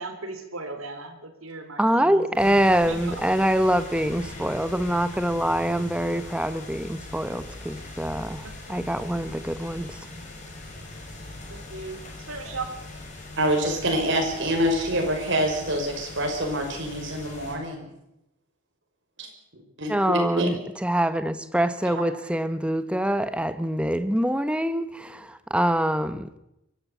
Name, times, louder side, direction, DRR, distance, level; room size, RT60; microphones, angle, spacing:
voice 1, 0.0-2.6 2.9-3.2 8.4-8.8 10.3-10.4 11.5-12.7, right 3 dB, 85° right, 6 dB, 3.7 m, -38 dB
voice 2, 1.8-10.0 19.9-26.3, right 1 dB, 5° right, 11 dB, 1.0 m, -25 dB
sound 1, 2.4-17.5, left 2 dB, 35° left, 7.0 m, -41 dB
voice 3, 13.4-17.9 19.2-20.5, equal, 60° right, 2 dB, 5.9 m, -26 dB
23.5 x 14.0 x 8.4 m, 0.86 s
head